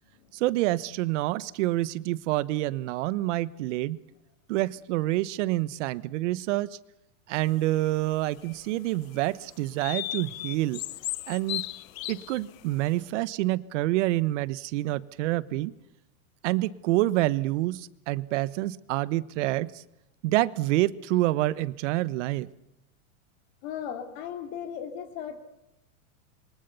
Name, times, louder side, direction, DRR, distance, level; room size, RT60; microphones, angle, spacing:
voice 1, 0.4-4.0 4.5-6.7 7.3-10.8 11.3-11.7 12.1-15.7 16.4-19.7 20.2-22.5, right 17 dB, 55° right, 18 dB, 1.2 m, -27 dB
sound 1, 7.6-8.6 9.1-9.2 9.8-12.7, left 16 dB, 70° left, 1.0 m, -36 dB
voice 2, 23.6-25.4, left 8 dB, 50° left, 6 dB, 3.4 m, -36 dB
27.0 x 23.5 x 7.0 m, 0.89 s
supercardioid pair, 135°, 42 cm